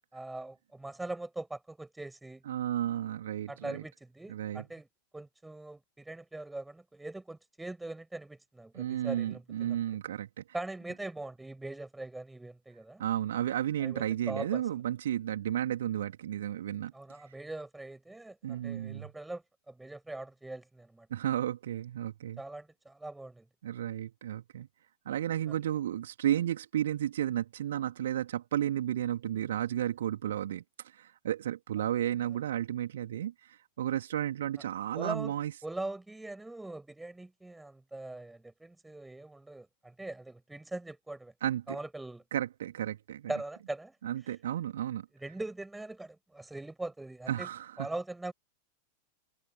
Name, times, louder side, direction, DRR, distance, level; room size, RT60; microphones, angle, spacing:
voice 1, 0.1-2.4 3.5-4.9 5.1-10.0 10.5-13.0 13.8-14.8 16.9-21.1 22.4-23.5 25.5-25.6 35.0-35.3 35.6-41.3 41.7-42.2 43.3-43.9 45.2-47.5 47.8-48.3, right 2 dB, 5° right, 7.3 m, -41 dB
voice 2, 2.4-3.8 4.3-4.6 8.7-10.4 13.0-16.9 18.4-19.1 21.1-22.4 23.6-24.7 25.0-35.5 41.4-41.8 42.3-43.3 44.0-45.1 47.3-47.7, right 11 dB, 60° right, 3.4 m, -33 dB
figure-of-eight pair, 90°, 0 cm